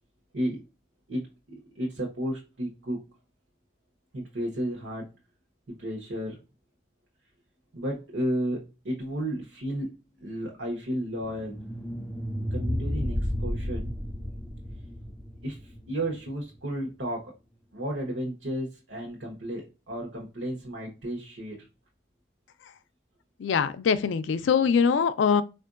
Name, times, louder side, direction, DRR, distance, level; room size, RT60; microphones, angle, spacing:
voice 1, 1.7-3.0 4.1-5.1 5.7-6.4 7.7-9.9 10.2-11.6 12.5-14.0 15.4-17.3 17.7-21.7, right 1 dB, 85° right, 0.9 m, -33 dB
sound 1, 11.2-16.3, equal, ahead, 0.3 m, -32 dB
voice 2, 23.4-25.4, left 6 dB, 80° left, 0.4 m, -23 dB
4.4 x 2.5 x 2.4 m
head